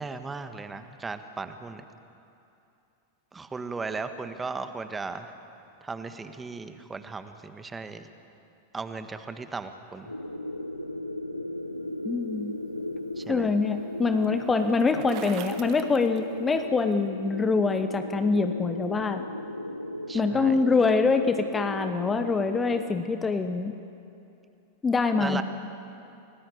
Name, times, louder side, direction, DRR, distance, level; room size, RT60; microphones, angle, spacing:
voice 1, 0.0-1.8 3.3-5.3 5.8-8.1 8.7-10.1 13.2-13.5 20.1-20.6 25.2-25.4, right 4 dB, 15° right, 9 dB, 1.6 m, -36 dB
sound 1, 10.1-22.8, left 1 dB, 85° left, 1.2 m, -36 dB
voice 2, 12.0-12.5 13.3-19.3 20.1-23.7 24.8-25.4, left 4 dB, 15° left, 8 dB, 1.1 m, -25 dB
Bicycle, 12.5-16.9, right 10 dB, 40° right, 1.6 m, -46 dB
30.0 x 19.5 x 8.3 m, 2.7 s
figure-of-eight pair, 90°, 0 cm